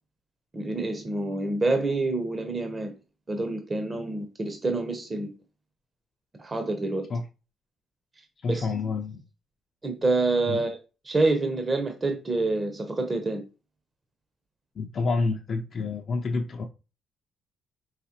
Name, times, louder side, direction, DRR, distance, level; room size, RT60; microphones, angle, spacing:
voice 1, 0.5-2.9 3.3-5.3 6.4-7.1 8.5-8.7 9.8-10.8 11.1-13.4, right 2 dB, 25° right, 0.8 m, -27 dB
voice 2, 8.4-9.2 10.5-10.6 14.8-16.6, left 3 dB, 50° left, 0.6 m, -28 dB
4.8 x 3.1 x 2.9 m
cardioid pair, 90°, 0 cm